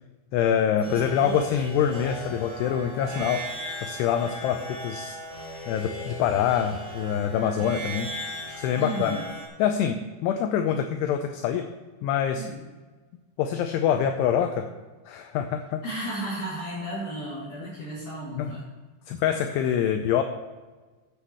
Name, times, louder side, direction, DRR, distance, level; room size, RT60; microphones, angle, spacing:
voice 1, 0.3-3.5 3.8-5.2 5.7-8.1 8.5-9.2 9.6-11.7 12.0-12.5 13.4-14.7 15.1-15.8 18.4-18.5 19.1-20.2, left 9 dB, 85° left, 6 dB, 2.4 m, -25 dB
voice 2, 0.8-1.7 8.8-9.3 12.3-12.6 15.8-18.7, right 1 dB, 45° left, -10 dB, 4.0 m, -34 dB
sound 1, 0.8-9.5, right 1 dB, 25° right, 3.5 m, -37 dB
16.0 x 8.4 x 3.2 m, 1.3 s
omnidirectional pair, 5.3 m